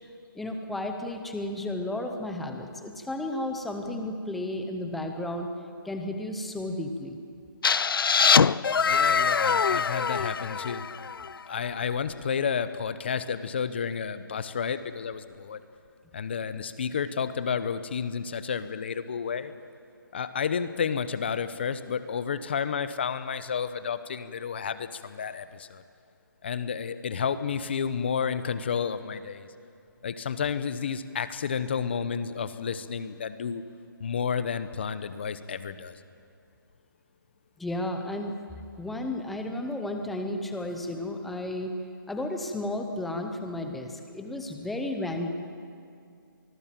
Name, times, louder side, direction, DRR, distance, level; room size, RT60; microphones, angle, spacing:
voice 1, 0.3-5.5 5.8-7.2 37.6-38.3 38.8-41.7 42.1-45.3, left 1 dB, ahead, 4 dB, 0.5 m, -33 dB
sound 1, 7.6-11.4, left 6 dB, 75° left, 0.5 m, -23 dB
voice 2, 8.8-10.9 11.5-15.6 16.1-19.5 20.1-25.8 26.4-29.5 30.0-33.6 34.0-36.0, left 6 dB, 30° left, 13 dB, 0.9 m, -31 dB
25.0 x 20.0 x 7.5 m, 2.4 s
hypercardioid pair, 175°, 12 cm